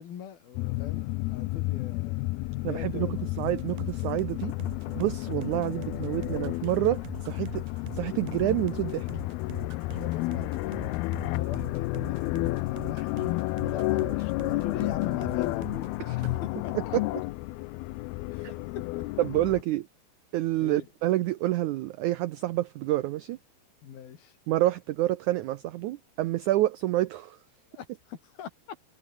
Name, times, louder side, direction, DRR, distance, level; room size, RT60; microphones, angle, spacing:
voice 1, 0.0-2.2 2.6-3.3 10.0-11.0 11.3-13.2 13.6-17.0 18.3-19.2 20.6-20.9 23.8-24.4 27.7-28.8, left 9 dB, 75° left, 4.5 m, -42 dB
sound 1, 0.6-19.6, left 20 dB, 90° left, 2.6 m, -31 dB
voice 2, 2.6-4.5 4.9-7.6 7.9-9.1 16.1-16.2 18.4-18.5 19.2-19.8 20.3-23.4 24.5-27.4, right 15 dB, 90° right, 1.7 m, -28 dB
sound 2, 3.4-16.0 16.2-16.4, right 15 dB, 70° right, 1.9 m, -44 dB
omnidirectional pair, 4.4 m